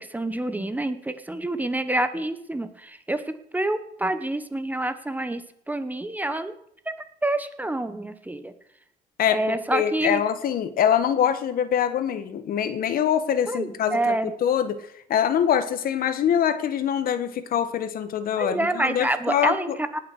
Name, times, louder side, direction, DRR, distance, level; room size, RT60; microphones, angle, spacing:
voice 1, 0.0-3.2 3.5-6.5 7.2-8.5 9.3-10.2 13.5-14.3 18.4-20.0, right 1 dB, 10° right, 10 dB, 1.0 m, -27 dB
voice 2, 9.2-19.8, left 9 dB, 60° left, 11 dB, 1.4 m, -24 dB
19.0 x 6.7 x 6.6 m, 0.71 s
cardioid pair, 110°, 17 cm